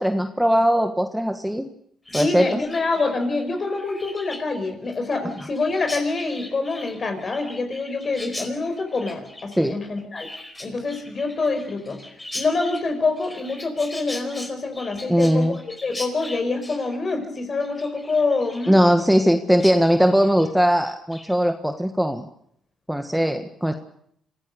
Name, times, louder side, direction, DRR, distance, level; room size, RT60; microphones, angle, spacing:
voice 1, 0.0-1.7 2.1-2.6 9.6-9.8 15.1-15.6 18.7-22.3 22.9-23.7, equal, 5° right, 6 dB, 1.4 m, -20 dB
Chirp tweet, 2.0-19.3 19.6-19.8 20.1-20.5 20.9-21.3, left 1 dB, 20° left, 4.6 m, -39 dB
voice 2, 2.1-10.3 10.6-12.0 12.3-15.6 15.8-18.8, left 3 dB, 40° left, 7 dB, 5.0 m, -26 dB
26.0 x 16.0 x 6.8 m, 0.70 s
cardioid pair, 90°, 0 cm